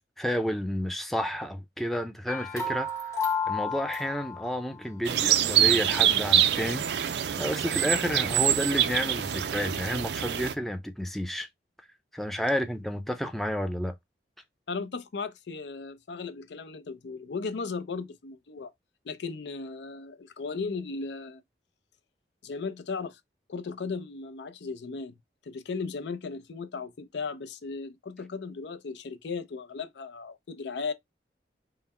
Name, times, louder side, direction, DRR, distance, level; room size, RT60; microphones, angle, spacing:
voice 1, 0.2-11.5 12.1-13.9, equal, ahead, 0.4 m, -31 dB
sound 1, 2.3-4.7, left 4 dB, 20° left, 0.8 m, -32 dB
sound 2, 5.0-10.5, right 10 dB, 70° right, 0.4 m, -25 dB
voice 2, 14.7-18.7 19.0-21.4 22.4-23.2 23.5-25.1 25.4-30.9, left 4 dB, 75° left, 0.5 m, -36 dB
3.8 x 2.1 x 4.1 m
head